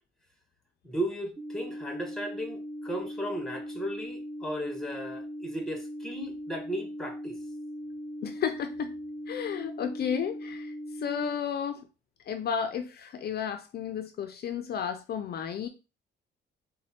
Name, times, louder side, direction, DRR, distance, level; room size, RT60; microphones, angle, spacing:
voice 1, 0.8-7.4, right 1 dB, 5° left, 1.1 m, -35 dB
sound 1, 1.4-11.4, equal, 25° right, 1.2 m, -39 dB
voice 2, 8.2-8.9 9.3-11.9 12.3-15.7, left 7 dB, 55° left, 0.5 m, -33 dB
4.2 x 2.2 x 4.1 m
cardioid pair, 90°, 20 cm